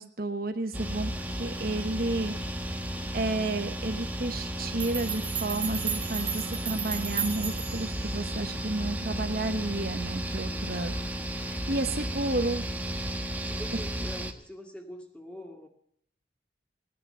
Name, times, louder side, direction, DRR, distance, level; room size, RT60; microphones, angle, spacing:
voice 1, 0.0-2.3 2.7-10.9 11.5-12.6, right 2 dB, 50° right, 7 dB, 1.1 m, -32 dB
sound 1, 0.7-14.3, equal, 10° right, 1.2 m, -34 dB
sound 2, 4.8-7.9, right 8 dB, 25° right, 1.1 m, -34 dB
sound 3, 5.7-6.6 7.5-8.4 9.4-10.3 11.2-12.0 12.8-13.8, equal, 45° left, 7.4 m, -52 dB
voice 2, 10.5-11.0 13.4-15.7, equal, 5° left, 2 dB, 2.2 m, -45 dB
17.5 x 10.5 x 6.8 m, 0.68 s
head